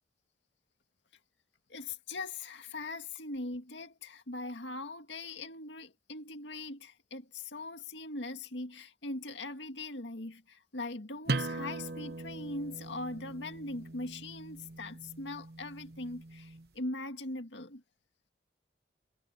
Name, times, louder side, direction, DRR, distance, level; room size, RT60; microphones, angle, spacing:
voice 1, 1.7-17.8, left 2 dB, 90° left, 2.0 m, -41 dB
sound 1, 11.3-16.7, right 3 dB, 60° right, 1.0 m, -40 dB
head